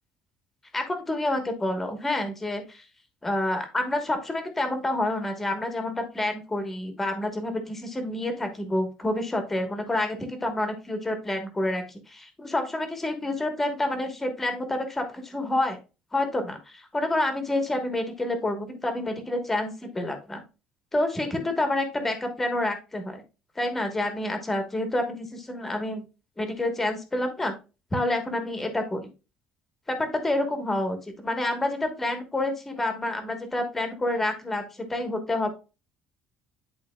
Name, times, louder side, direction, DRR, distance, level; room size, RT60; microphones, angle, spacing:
voice 1, 0.7-2.8 3.2-15.8 16.1-20.4 20.9-23.2 23.6-26.0 26.4-27.5 27.9-29.0 29.9-35.5, left 1 dB, 10° left, 6 dB, 1.2 m, -28 dB
11.0 x 3.9 x 2.3 m, 0.29 s
cardioid pair, 170°, 2 cm